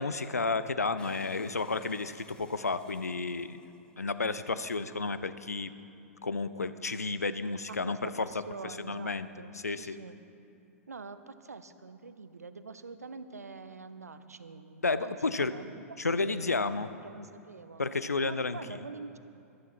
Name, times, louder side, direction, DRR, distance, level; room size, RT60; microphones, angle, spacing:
voice 1, 0.0-3.6 4.0-5.7 6.2-8.3 8.6-9.3 9.5-10.0 14.8-15.5 16.0-16.9 17.8-18.8, left 3 dB, 85° left, 13 dB, 0.5 m, -32 dB
sound 1, 1.0-4.5, left 2 dB, 10° left, 0.8 m, -57 dB
voice 2, 7.7-10.2 10.9-15.7 16.1-16.7 17.0-19.2, right 4 dB, 80° right, 12 dB, 0.7 m, -45 dB
12.5 x 10.5 x 5.9 m, 2.6 s
figure-of-eight pair, 100°, 8 cm